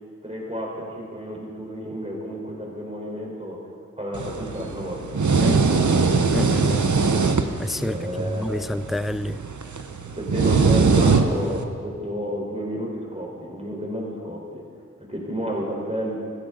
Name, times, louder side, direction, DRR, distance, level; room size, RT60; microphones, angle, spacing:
voice 1, 0.2-3.6 4.0-5.3 7.8-8.5 10.1-14.6 15.0-16.2, equal, 20° right, -2 dB, 4.1 m, -31 dB
sound 1, 4.1-11.6, right 4 dB, 75° right, 0.8 m, -22 dB
voice 2, 6.3-6.9 7.6-9.4, left 1 dB, ahead, 15 dB, 0.3 m, -28 dB
16.0 x 15.0 x 3.9 m, 2.1 s
wide cardioid pair, 45°, 30 cm